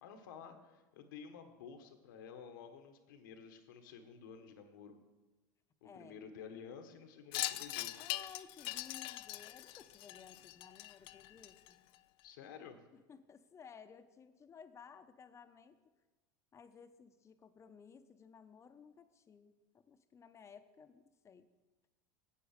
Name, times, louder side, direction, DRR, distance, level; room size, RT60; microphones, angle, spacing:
voice 1, 0.0-5.0 5.8-8.1 12.2-12.8, left 6 dB, 80° left, 7 dB, 1.4 m, -52 dB
Wind chime, 7.3-12.0, left 17 dB, 60° left, 0.4 m, -42 dB
voice 2, 8.0-11.9 12.9-15.8 16.5-21.5, left 6 dB, 25° left, 10 dB, 0.9 m, -57 dB
8.6 x 8.4 x 6.6 m, 1.2 s
supercardioid pair, 105°, 10 cm